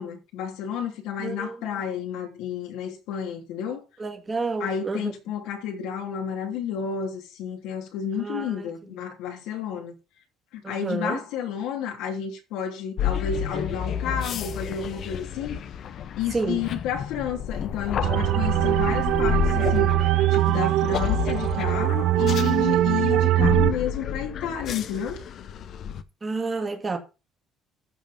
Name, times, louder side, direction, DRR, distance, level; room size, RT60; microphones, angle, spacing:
voice 1, 0.0-3.8 4.6-9.9 10.5-15.6 16.2-25.2, left 8 dB, 85° left, 3.1 m, -31 dB
voice 2, 1.2-1.6 4.0-5.1 8.2-8.7 10.6-11.2 16.3-16.6 26.2-27.0, right 3 dB, 20° right, 2.3 m, -29 dB
sound 1, 13.0-26.0, left 8 dB, 45° left, 0.8 m, -31 dB
sound 2, 18.0-23.7, right 14 dB, 60° right, 0.7 m, -22 dB
14.5 x 5.0 x 5.3 m
cardioid pair, 155°, 0 cm